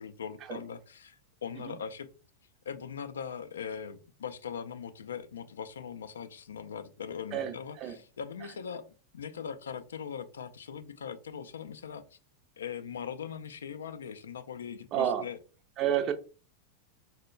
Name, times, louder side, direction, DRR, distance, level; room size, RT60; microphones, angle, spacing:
voice 1, 0.0-2.1 2.7-8.8 9.1-12.2 12.6-15.4, left 7 dB, 65° left, 12 dB, 0.3 m, -40 dB
voice 2, 7.3-8.0 14.9-15.3 15.8-16.1, right 10 dB, 35° right, 8 dB, 0.4 m, -30 dB
4.2 x 2.1 x 2.3 m, 0.36 s
figure-of-eight pair, 90°, 0 cm